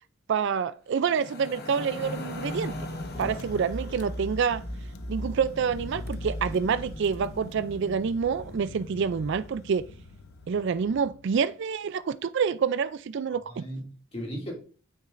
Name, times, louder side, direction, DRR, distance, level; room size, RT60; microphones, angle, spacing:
voice 1, 0.3-2.8 3.2-4.6 5.1-9.8 10.5-13.6, right 6 dB, 55° right, 0.3 m, -27 dB
sound 1, 1.0-10.3, left 1 dB, 45° left, 1.1 m, -39 dB
Car / Engine, 3.2-11.5, left 2 dB, 85° left, 0.7 m, -45 dB
voice 2, 13.3-14.5, equal, 25° left, 2.4 m, -37 dB
9.3 x 8.6 x 2.5 m
head